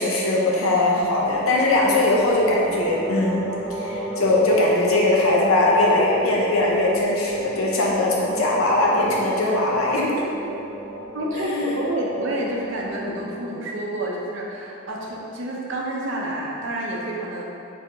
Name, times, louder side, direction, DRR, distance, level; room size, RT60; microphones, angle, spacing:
voice 1, 0.0-3.5 3.8-10.2 11.3-11.8, left 2 dB, 85° left, -3 dB, 0.7 m, -20 dB
sound 1, 1.1-13.3, equal, 15° right, 0.6 m, -34 dB
voice 2, 11.1-17.4, right 1 dB, 60° right, -2 dB, 0.5 m, -29 dB
3.4 x 3.3 x 2.9 m, 2.7 s
head